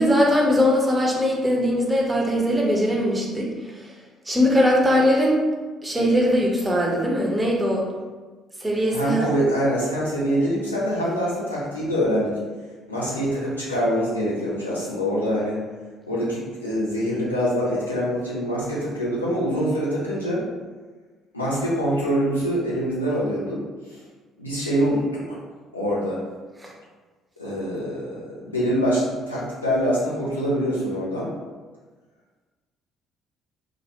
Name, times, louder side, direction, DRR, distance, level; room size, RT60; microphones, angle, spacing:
voice 1, 0.0-3.5 3.8-3.9 4.3-5.4 5.8-7.9 8.6-9.3 26.6-26.7, equal, 15° right, -2 dB, 0.6 m, -20 dB
voice 2, 8.9-12.3 12.9-15.6 16.1-20.4 21.3-23.6 24.4-25.2 25.7-26.2 27.4-31.3, equal, 85° left, -8 dB, 0.5 m, -24 dB
2.2 x 2.1 x 2.8 m, 1.3 s
figure-of-eight pair, 50°, 0 cm